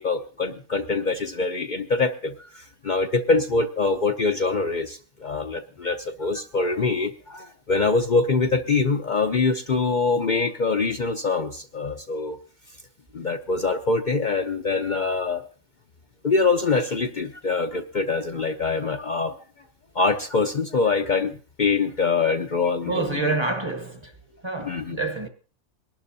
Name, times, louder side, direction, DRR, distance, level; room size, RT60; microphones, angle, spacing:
voice 1, 0.0-12.4 13.1-15.5 16.2-19.3 19.9-23.1 24.6-25.0, left 4 dB, 45° left, 0.8 m, -24 dB
voice 2, 22.8-24.1 24.4-25.3, right 3 dB, 25° right, 1.1 m, -27 dB
23.0 x 12.0 x 2.7 m
omnidirectional pair, 1.3 m